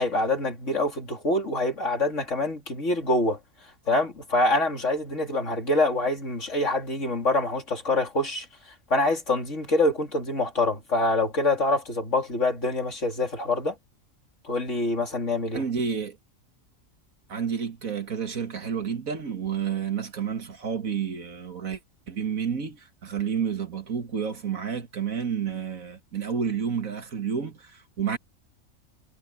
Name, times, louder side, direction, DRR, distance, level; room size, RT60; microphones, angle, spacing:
voice 1, 0.0-3.4 3.9-8.5 8.9-13.7 14.4-15.6, left 2 dB, 60° left, 3.5 m, -25 dB
voice 2, 15.5-16.2 17.3-21.8 22.1-28.2, right 7 dB, 75° right, 2.3 m, -30 dB
omnidirectional pair, 1.4 m